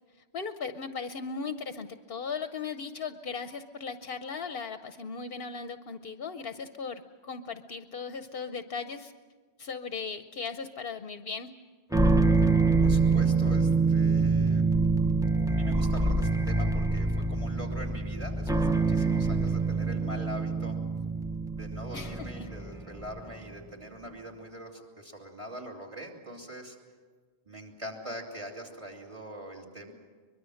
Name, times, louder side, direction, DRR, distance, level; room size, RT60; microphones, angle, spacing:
voice 1, 0.3-9.1 9.6-11.5 21.9-22.5, left 5 dB, 60° left, 9 dB, 1.0 m, -37 dB
sound 1, 11.9-23.3, right 3 dB, 5° right, 0.6 m, -25 dB
voice 2, 12.8-14.6 15.5-20.8 21.5-26.8 27.4-29.9, equal, 30° right, 1 dB, 3.2 m, -43 dB
23.5 x 22.0 x 6.4 m, 1.5 s
omnidirectional pair, 1.1 m